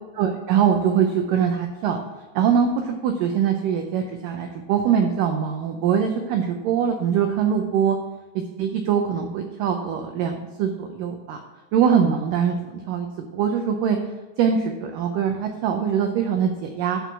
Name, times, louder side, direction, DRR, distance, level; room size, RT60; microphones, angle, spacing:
voice 1, 0.2-2.0 2.4-8.0 8.6-11.4 11.7-12.6 12.9-13.1 13.3-14.0 14.4-17.0, right 7 dB, 90° right, 5 dB, 1.9 m, -22 dB
12.0 x 4.6 x 6.0 m, 1.2 s
omnidirectional pair, 4.8 m